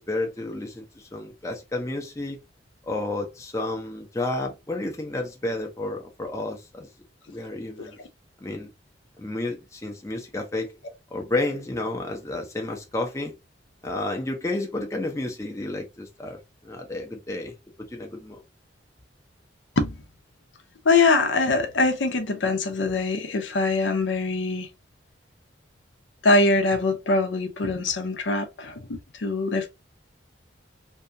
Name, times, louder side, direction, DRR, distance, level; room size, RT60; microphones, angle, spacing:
voice 1, 0.0-2.4 2.8-6.9 7.3-8.0 8.4-8.7 9.2-10.7 11.1-13.3 13.8-18.4, left 2 dB, 15° left, 0.5 m, -31 dB
voice 2, 20.8-24.7 26.2-29.7, left 3 dB, 80° left, 0.6 m, -23 dB
2.6 x 2.3 x 2.6 m
head